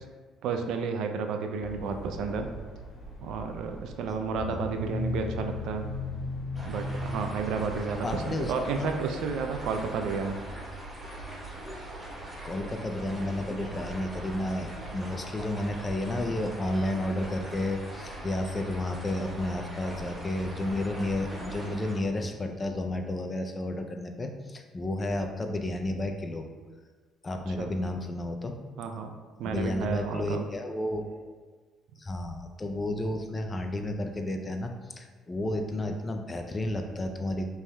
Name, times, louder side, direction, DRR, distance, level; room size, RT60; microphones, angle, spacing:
voice 1, 0.4-2.5 3.2-5.9 6.6-10.4 27.5-27.7 28.8-30.5, right 5 dB, 75° right, 5 dB, 0.4 m, -32 dB
sound 1, 1.6-21.5, left 1 dB, 65° left, 1.5 m, -40 dB
sound 2, 6.5-22.0, right 1 dB, 15° right, 1.3 m, -43 dB
voice 2, 8.0-8.9 12.4-26.5 27.2-28.6 29.4-31.4 32.0-37.5, left 1 dB, 25° left, 5 dB, 0.5 m, -32 dB
5.2 x 3.4 x 2.3 m, 1.4 s
cardioid pair, 90°, 0 cm